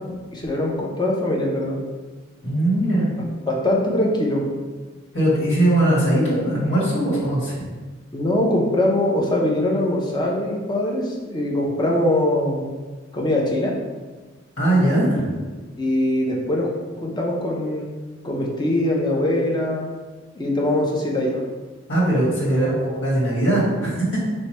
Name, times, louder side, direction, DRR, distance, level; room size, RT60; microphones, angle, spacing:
voice 1, 0.1-1.8 3.5-4.5 8.1-12.6 13.1-13.7 15.8-16.7 17.0-17.9 18.2-19.9 20.3-21.4 22.4-22.8, left 1 dB, 20° left, -2 dB, 0.5 m, -22 dB
voice 2, 2.4-3.1 5.1-7.6 14.6-15.3 21.9-24.2, right 1 dB, 65° left, -7 dB, 1.4 m, -20 dB
3.0 x 2.2 x 4.2 m, 1.3 s
head